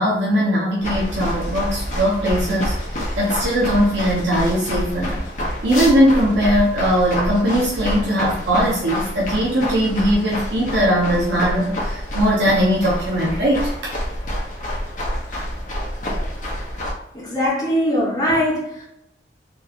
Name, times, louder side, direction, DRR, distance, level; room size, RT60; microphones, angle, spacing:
voice 1, 0.0-2.7 3.2-5.2 5.6-13.9 16.1-16.3, equal, 75° right, -4 dB, 1.0 m, -19 dB
sound 1, 0.8-16.9, equal, 45° left, 1.1 m, -27 dB
voice 2, 17.1-18.8, equal, 20° left, -7 dB, 1.4 m, -21 dB
4.6 x 3.3 x 2.9 m, 0.83 s
head